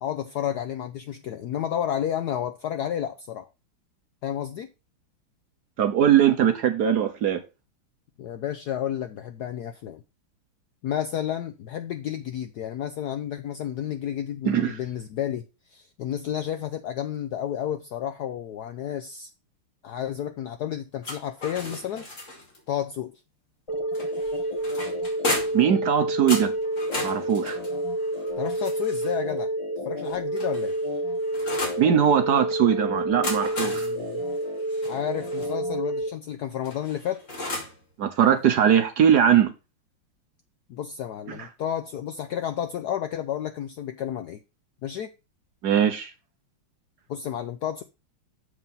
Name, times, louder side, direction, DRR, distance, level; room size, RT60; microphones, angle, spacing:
voice 1, 0.0-3.5 4.2-4.7 8.2-10.0 10.8-15.4 15.7-19.3 19.8-22.1 22.7-23.1 28.4-29.5 29.8-30.7 33.6-34.2 34.8-37.3 40.7-44.4 44.8-45.1 47.1-47.8, left 10 dB, 75° left, 0.9 m, -31 dB
voice 2, 5.8-7.4 14.4-14.8 25.5-26.5 27.0-27.6 31.8-33.9 38.0-39.5 41.3-41.5 45.6-46.1, right 9 dB, 60° right, 1.2 m, -21 dB
sound 1, 21.0-22.6 23.9-25.7 26.3-29.2 30.0-31.9 33.0-35.5 36.6-37.8, left 2 dB, 35° left, 2.6 m, -35 dB
sound 2, 23.7-36.1, right 1 dB, 15° left, 1.4 m, -29 dB
7.3 x 4.8 x 5.4 m
omnidirectional pair, 2.3 m